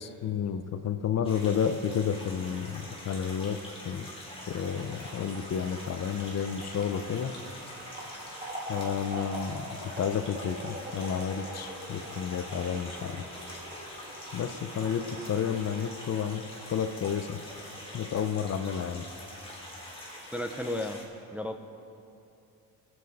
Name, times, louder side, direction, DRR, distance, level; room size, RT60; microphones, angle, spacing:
voice 1, 0.0-3.6 3.8-4.1 4.5-7.3 8.7-13.2 14.3-16.4 16.7-17.4 17.9-19.0, left 7 dB, 45° left, 9 dB, 0.6 m, -31 dB
sound 1, 1.2-21.0, left 1 dB, 15° left, 2.9 m, -45 dB
sound 2, 4.2-17.5 17.8-17.9, equal, 20° right, 2.2 m, -43 dB
voice 2, 20.3-21.0 21.3-21.6, left 1 dB, 5° right, 5 dB, 0.5 m, -33 dB
23.0 x 8.0 x 4.1 m, 2.6 s
cardioid pair, 130°, 37 cm